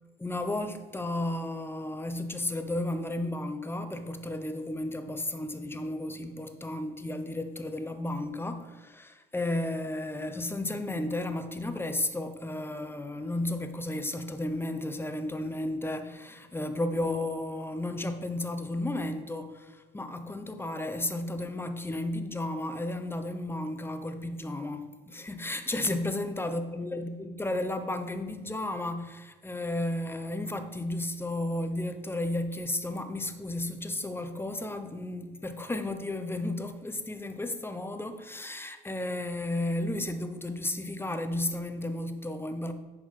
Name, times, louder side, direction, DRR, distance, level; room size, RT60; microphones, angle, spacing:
voice 1, 0.2-42.7, left 1 dB, 15° left, 0.8 m, -33 dB
10.5 x 4.5 x 4.2 m
supercardioid pair, 65°, 17 cm